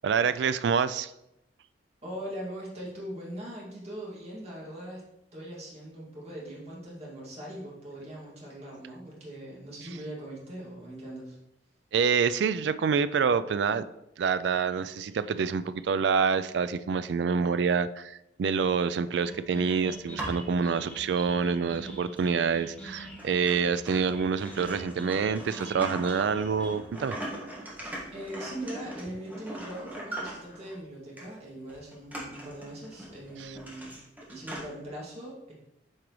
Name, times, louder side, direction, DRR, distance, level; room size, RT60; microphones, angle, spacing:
voice 1, 0.0-1.1 11.9-13.8 14.2-27.2 33.4-33.5, right 6 dB, 65° right, 14 dB, 0.3 m, -27 dB
voice 2, 2.0-5.0 5.3-11.4 28.1-33.9 34.3-35.5, right 1 dB, 35° right, -4 dB, 2.1 m, -41 dB
sound 1, 19.1-26.8, equal, 5° left, 1.0 m, -45 dB
sound 2, 19.8-20.6 21.1-21.2 22.2-22.3 22.8-22.9 23.2-30.7 31.2-31.3 31.7-34.6, right 1 dB, 10° right, 1.6 m, -40 dB
8.8 x 4.7 x 3.1 m, 0.84 s
head